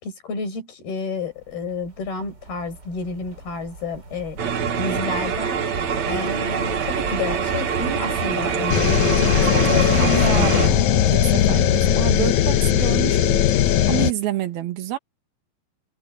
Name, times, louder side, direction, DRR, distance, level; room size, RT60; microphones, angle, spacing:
voice 1, 0.0-4.4 4.8-5.7 6.1-10.1 10.4-10.8, left 4 dB, 90° left, 8.2 m, -30 dB
sound 1, 1.2-10.8, right 2 dB, 25° right, 5.4 m, -36 dB
sound 2, 4.4-10.7, right 7 dB, 55° right, 2.8 m, -25 dB
sound 3, 8.7-14.1, left 11 dB, 70° left, 2.0 m, -18 dB
voice 2, 9.5-15.0, right 13 dB, 80° right, 3.5 m, -28 dB
omnidirectional pair, 4.2 m